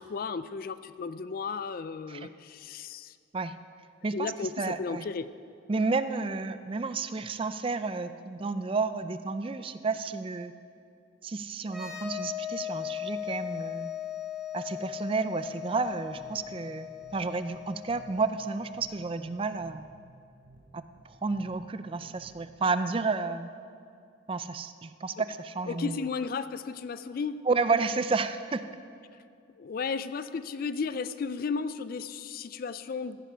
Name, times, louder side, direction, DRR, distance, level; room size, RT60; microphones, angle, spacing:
voice 1, 0.0-3.1 4.1-5.3 25.7-27.4 29.6-33.2, left 5 dB, 45° left, 14 dB, 0.4 m, -34 dB
voice 2, 4.6-5.0 5.7-10.5 11.2-13.9 14.5-19.9 20.7-23.5 24.3-26.1 27.5-28.7, right 4 dB, 25° right, 12 dB, 0.3 m, -31 dB
sound 1, 11.6-19.2, left 10 dB, ahead, 1.5 m, -39 dB
sound 2, 15.8-22.7, right 1 dB, 45° right, 1.8 m, -56 dB
15.0 x 9.9 x 4.5 m, 2.4 s
head